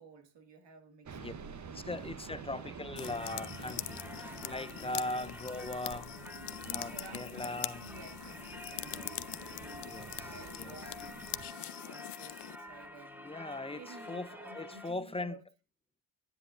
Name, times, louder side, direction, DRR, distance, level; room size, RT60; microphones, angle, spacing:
voice 1, 0.0-2.1 2.6-3.3 3.7-5.0 6.6-9.9 10.3-13.3 13.7-15.4, right 4 dB, 65° right, 2.1 m, -54 dB
sound 1, 1.1-11.5, right 6 dB, 40° right, 0.9 m, -49 dB
voice 2, 1.7-6.1 6.7-7.8 9.8-10.7 13.2-15.4, left 2 dB, 15° left, 0.4 m, -40 dB
sound 2, 3.0-12.6, left 13 dB, 60° left, 0.6 m, -43 dB
Singing / Church bell, 3.0-14.9, left 1 dB, 5° right, 1.6 m, -49 dB
10.0 x 9.6 x 2.5 m
cardioid pair, 100°, 46 cm